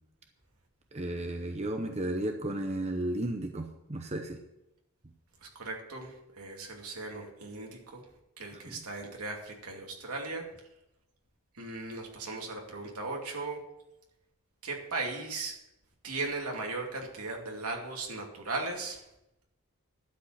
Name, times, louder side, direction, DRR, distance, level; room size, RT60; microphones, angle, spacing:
voice 1, 0.9-4.4 8.5-8.8, right 1 dB, 30° right, 4 dB, 0.8 m, -34 dB
voice 2, 5.4-8.0 8.4-10.4 11.6-13.6 14.6-15.5 16.0-19.0, right 3 dB, 85° right, 0 dB, 2.5 m, -37 dB
12.0 x 5.2 x 8.0 m, 0.88 s
head